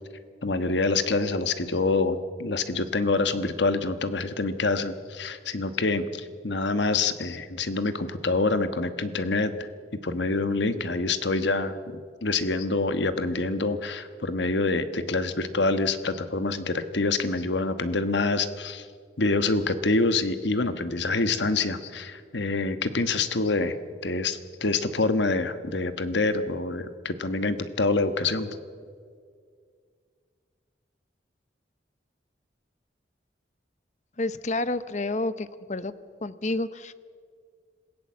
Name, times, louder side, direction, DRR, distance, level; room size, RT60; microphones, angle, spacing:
voice 1, 0.4-9.7 10.0-18.8 19.2-23.8 24.0-28.5, left 3 dB, 75° left, 10 dB, 1.3 m, -26 dB
voice 2, 34.2-35.9 36.2-36.9, left 2 dB, 40° left, 14 dB, 0.8 m, -29 dB
26.5 x 16.5 x 7.5 m, 2.1 s
head